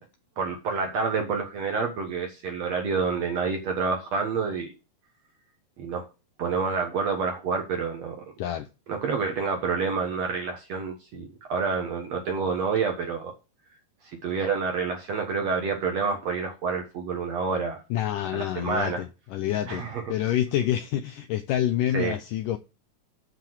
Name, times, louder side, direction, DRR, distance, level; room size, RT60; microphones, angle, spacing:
voice 1, 0.4-4.7 5.8-6.1 6.4-8.2 8.9-13.3 14.2-17.8 18.3-19.0 19.7-20.0 21.9-22.2, right 5 dB, 60° right, 1.8 m, -28 dB
voice 2, 17.9-22.6, left 11 dB, 90° left, 1.9 m, -27 dB
7.9 x 7.0 x 4.7 m
omnidirectional pair, 4.6 m